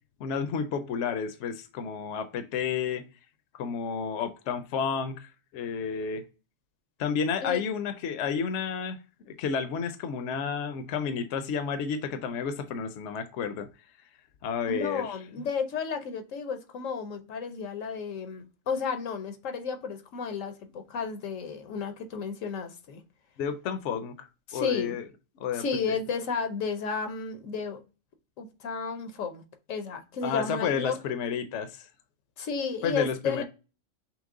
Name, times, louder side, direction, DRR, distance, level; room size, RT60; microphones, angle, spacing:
voice 1, 0.2-3.0 3.5-6.2 7.0-9.0 9.2-13.7 14.4-15.1 23.4-24.3 24.5-25.0 25.4-25.6 30.2-31.8 32.8-33.4, left 6 dB, 70° left, 0.9 m, -31 dB
voice 2, 14.7-23.0 24.5-25.0 25.5-27.8 28.4-29.4 29.7-31.0 32.4-33.4, left 5 dB, 85° left, 1.2 m, -32 dB
5.8 x 2.1 x 3.6 m
omnidirectional pair, 1.3 m